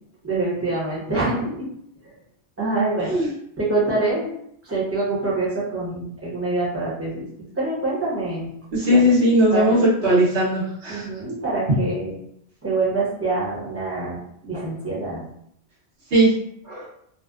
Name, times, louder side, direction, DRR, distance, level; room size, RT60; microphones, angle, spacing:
voice 1, 0.2-1.7 2.6-3.2 3.6-4.3 4.6-7.3 7.6-8.5 8.9-9.1 9.5-9.6 10.9-12.1 12.6-15.2, right 2 dB, 15° right, -7 dB, 0.8 m, -25 dB
voice 2, 8.7-11.1 16.1-16.3 16.6-16.9, equal, 70° right, -9 dB, 1.1 m, -18 dB
2.6 x 2.1 x 2.3 m, 0.70 s
omnidirectional pair, 1.1 m